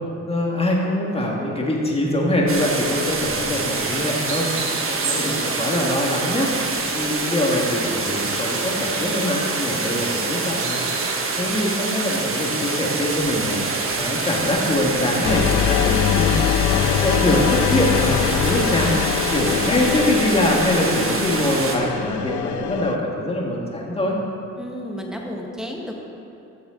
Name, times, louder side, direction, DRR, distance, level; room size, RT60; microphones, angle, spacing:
voice 1, 0.3-4.5 4.9-6.5 6.9-10.8 11.4-13.6 14.0-16.4 16.7-18.9 19.3-24.2, left 1 dB, 20° left, -2 dB, 2.0 m, -23 dB
sound 1, 2.5-21.8, right 3 dB, 45° right, 1.4 m, -26 dB
sound 2, 3.7-11.1, right 5 dB, 85° right, 1.3 m, -34 dB
sound 3, 15.2-23.0, left 11 dB, 75° left, 0.5 m, -23 dB
voice 2, 24.6-26.0, equal, ahead, 0 dB, 1.5 m, -32 dB
14.0 x 7.0 x 3.9 m, 2.7 s
cardioid pair, 90°, 30 cm